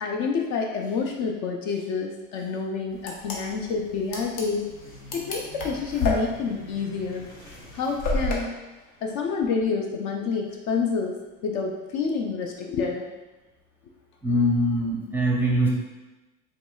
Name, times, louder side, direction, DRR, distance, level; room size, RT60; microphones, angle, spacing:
voice 1, 0.0-4.7 5.1-7.3 7.7-8.5 9.0-11.2 11.4-13.0, left 5 dB, 45° left, 1 dB, 0.5 m, -28 dB
sound 1, 3.0-8.3, left 2 dB, 70° left, 1.0 m, -30 dB
sound 2, 4.4-9.4, left 1 dB, 25° left, 1.2 m, -49 dB
voice 2, 14.2-15.7, equal, 5° right, -4 dB, 0.5 m, -22 dB
4.6 x 3.1 x 2.3 m, 1.1 s
supercardioid pair, 135°, 40 cm